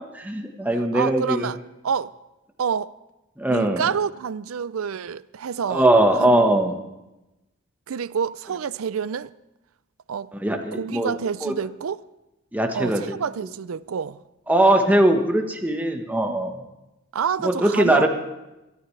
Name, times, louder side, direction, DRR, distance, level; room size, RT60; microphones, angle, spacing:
voice 1, 0.0-1.5 3.4-3.8 5.7-6.7 10.3-11.1 11.4-11.5 12.5-13.1 14.5-16.6 17.4-18.1, right 1 dB, 10° right, 1.2 m, -20 dB
voice 2, 0.9-1.6 1.8-2.1 2.6-2.9 3.5-5.8 6.2-6.3 7.9-9.3 10.1-10.3 10.7-12.0 12.7-14.2 17.1-18.1, right 6 dB, 70° right, 0.4 m, -27 dB
23.5 x 13.0 x 3.3 m
head